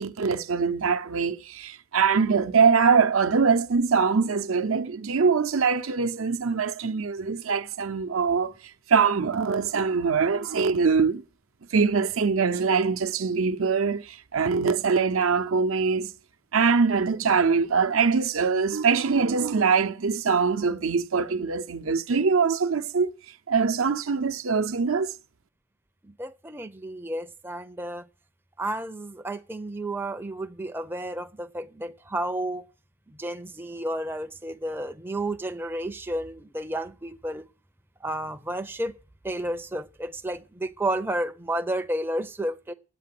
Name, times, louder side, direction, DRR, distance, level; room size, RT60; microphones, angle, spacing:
voice 1, 0.0-8.5 8.9-11.2 11.7-16.1 16.5-23.1 23.5-25.1, right 5 dB, 75° right, 0.7 m, -23 dB
voice 2, 26.0-28.1 28.6-32.6 33.1-37.4 38.0-38.9 39.2-42.7, right 1 dB, 10° right, 0.5 m, -31 dB
9.1 x 8.4 x 7.6 m
head